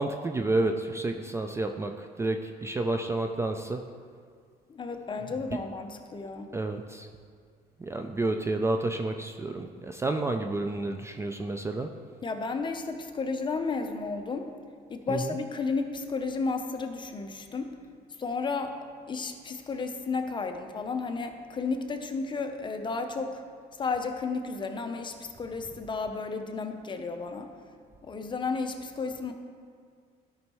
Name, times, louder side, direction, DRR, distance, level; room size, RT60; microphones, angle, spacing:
voice 1, 0.0-3.8 5.1-5.2 5.5-5.6 6.5-7.1 7.8-11.9 15.1-15.4 25.7-25.8, right 2 dB, 15° right, 5 dB, 0.4 m, -30 dB
voice 2, 4.7-6.5 12.2-14.5 14.9-17.8 18.2-23.4 23.8-27.5 28.0-29.3, left 4 dB, 30° left, 5 dB, 0.7 m, -33 dB
12.5 x 5.5 x 3.1 m, 2.1 s
cardioid pair, 110°, 17 cm